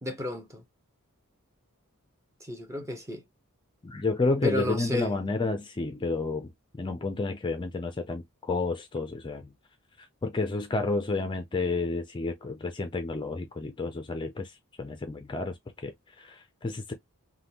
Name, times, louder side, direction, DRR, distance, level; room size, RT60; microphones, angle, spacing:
voice 1, 0.0-0.6 2.4-3.2 4.4-5.1, left 1 dB, 15° right, 0.7 m, -32 dB
voice 2, 3.8-9.5 10.0-16.9, left 3 dB, 20° left, 0.4 m, -31 dB
3.5 x 2.2 x 2.8 m
head